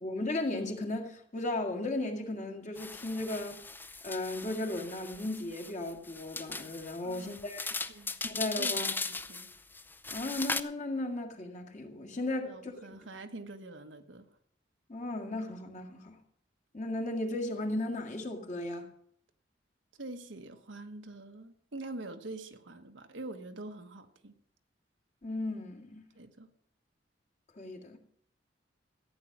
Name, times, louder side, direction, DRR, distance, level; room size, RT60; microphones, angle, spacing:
voice 1, 0.0-3.6 4.0-7.8 8.2-9.0 10.1-12.7 14.9-16.2 16.7-18.9 25.2-26.1 27.5-28.0, left 2 dB, 40° left, 1.9 m, -35 dB
sound 1, 2.8-10.6, left 3 dB, 10° left, 0.5 m, -38 dB
voice 2, 7.0-7.5 7.9-8.2 8.5-9.5 12.4-14.3 20.0-24.3 26.1-26.5, right 2 dB, 85° right, 1.3 m, -45 dB
14.5 x 9.1 x 6.0 m
head